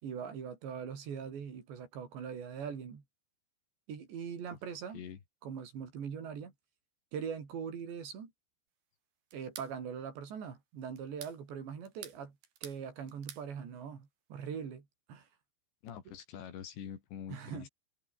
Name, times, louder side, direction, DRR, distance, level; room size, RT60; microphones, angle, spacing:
voice 1, 0.0-3.0 3.9-5.0 5.4-6.5 7.1-8.3 9.3-12.4 12.6-15.3 17.3-17.7, right 7 dB, 80° right, 6.5 m, -41 dB
sound 1, 9.3-9.7 11.0-11.4 11.8-12.8 13.1-13.5, right 8 dB, 65° right, 4.5 m, -49 dB
voice 2, 15.8-17.7, left 9 dB, 80° left, 5.3 m, -45 dB
omnidirectional pair, 5.0 m